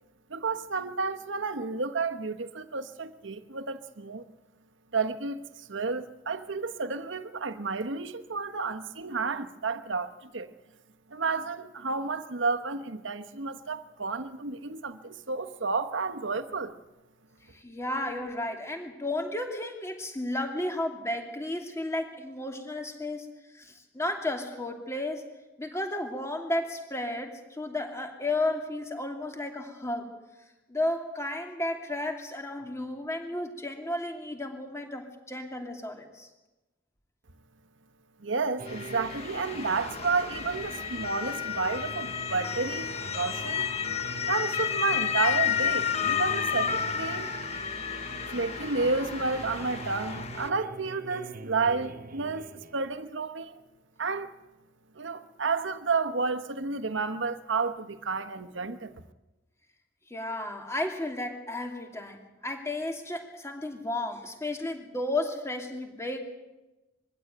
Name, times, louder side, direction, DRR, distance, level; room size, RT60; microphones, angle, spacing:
voice 1, 0.3-4.2 4.9-10.5 11.1-16.8 38.2-43.7 44.3-47.3 48.3-52.5 52.7-53.5 54.0-54.3 54.9-58.9, right 4 dB, 70° right, 1.2 m, -31 dB
voice 2, 17.5-25.2 25.6-30.1 30.7-36.3 60.1-66.2, left 1 dB, 15° left, 2.7 m, -33 dB
sound 1, 38.6-53.0, right 3 dB, 45° right, 0.8 m, -43 dB
Motor vehicle (road) / Siren, 38.7-50.5, left 8 dB, 35° left, 1.0 m, -31 dB
23.0 x 16.0 x 9.2 m
head